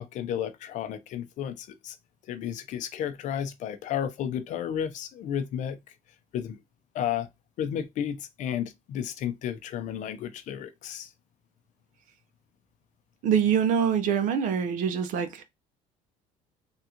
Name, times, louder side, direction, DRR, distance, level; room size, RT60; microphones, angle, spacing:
voice 1, 0.0-2.0 2.3-5.8 6.3-6.6 6.9-7.3 7.6-11.1, left 9 dB, 60° left, 0.6 m, -32 dB
voice 2, 13.2-15.4, right 7 dB, 65° right, 0.7 m, -24 dB
3.6 x 2.4 x 2.8 m
supercardioid pair, 95°, 14 cm